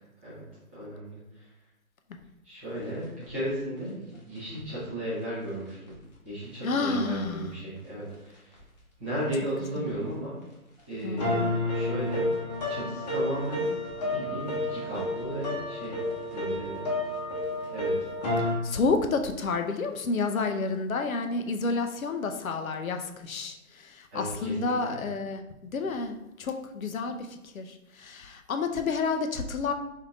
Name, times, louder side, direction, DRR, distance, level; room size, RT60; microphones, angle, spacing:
voice 1, 0.7-1.5 2.4-5.9 6.2-8.5 9.0-10.3 10.9-12.2 12.7-13.6 14.1-16.0 16.3-16.8 17.7-17.9 24.1-24.8, right 1 dB, 10° right, -11 dB, 0.6 m, -35 dB
sound 1, 3.2-3.3 4.6-4.7 5.9-6.0 7.2-7.3 8.5-8.6 9.9-10.0 11.2-18.5, left 1 dB, 30° left, 0.8 m, -30 dB
voice 2, 6.6-7.5 9.8-9.9 11.0-11.5 18.6-29.7, left 4 dB, 65° left, 6 dB, 0.6 m, -30 dB
3.6 x 2.7 x 3.7 m, 0.94 s
figure-of-eight pair, 140°, 44 cm